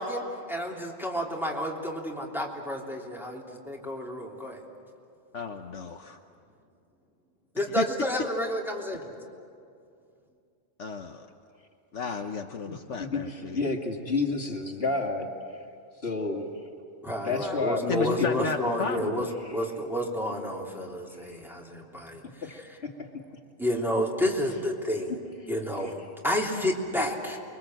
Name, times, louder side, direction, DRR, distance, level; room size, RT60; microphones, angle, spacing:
voice 1, 0.0-4.6 7.5-9.1 17.0-19.3 19.5-22.2 23.6-25.1 25.5-25.9 26.2-27.4, equal, ahead, -3 dB, 3.3 m, -30 dB
voice 2, 5.3-6.2 7.8-7.9 10.8-11.3 11.9-13.7 17.9-19.3, left 5 dB, 65° left, 4 dB, 1.3 m, -33 dB
voice 3, 13.0-15.3 16.0-16.5 17.2-18.4 19.4-19.6 22.4-22.9 25.1-25.2 25.8-25.9, left 3 dB, 50° left, 1 dB, 2.5 m, -30 dB
29.0 x 23.0 x 7.9 m, 2.4 s
omnidirectional pair, 1.3 m